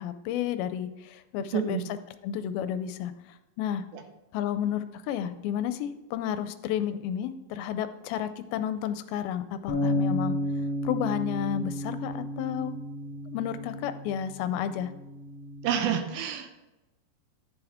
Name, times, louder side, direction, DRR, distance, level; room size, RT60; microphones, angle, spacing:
voice 1, 0.0-1.8 2.2-3.1 3.6-3.8 4.3-10.4 10.8-12.8 13.3-14.9, left 9 dB, 85° left, 11 dB, 2.3 m, -31 dB
voice 2, 1.5-1.8 3.9-4.0 15.6-16.6, right 8 dB, 80° right, 7 dB, 2.5 m, -29 dB
sound 1, 9.7-15.9, left 1 dB, 65° left, 1.5 m, -33 dB
11.5 x 7.1 x 3.5 m, 1.0 s
omnidirectional pair, 4.4 m